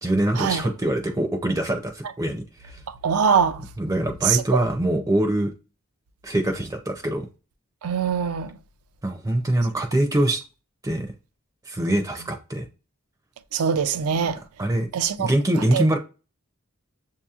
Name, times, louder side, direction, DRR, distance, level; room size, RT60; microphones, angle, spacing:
voice 1, 0.0-2.8 3.8-5.5 6.2-7.3 9.0-10.4 10.8-11.1 11.7-12.7 14.6-14.9 15.2-16.0, right 1 dB, 15° right, 0.4 m, -23 dB
voice 2, 3.0-3.6 4.2-4.6 7.8-8.5 13.5-14.4 14.9-15.3 15.7-15.8, right 7 dB, 85° right, 0.4 m, -22 dB
6.8 x 2.8 x 2.4 m
head